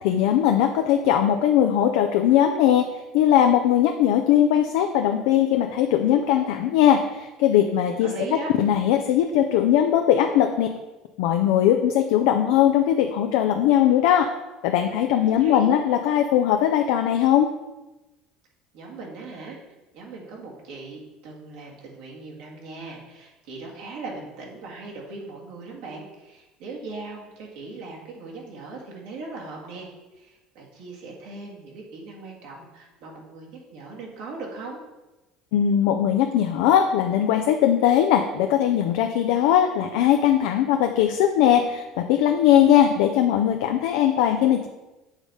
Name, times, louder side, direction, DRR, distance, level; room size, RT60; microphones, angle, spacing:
voice 1, 0.0-2.9 3.1-8.1 8.6-10.7 11.2-14.3 14.6-17.5 35.5-44.7, left 10 dB, 75° left, 5 dB, 0.4 m, -20 dB
voice 2, 8.0-8.5 15.1-15.7 18.7-19.6 19.9-29.9 30.1-34.8, right 3 dB, 75° right, -2 dB, 1.8 m, -39 dB
7.2 x 3.5 x 5.3 m, 1.1 s
supercardioid pair, 85°, 0 cm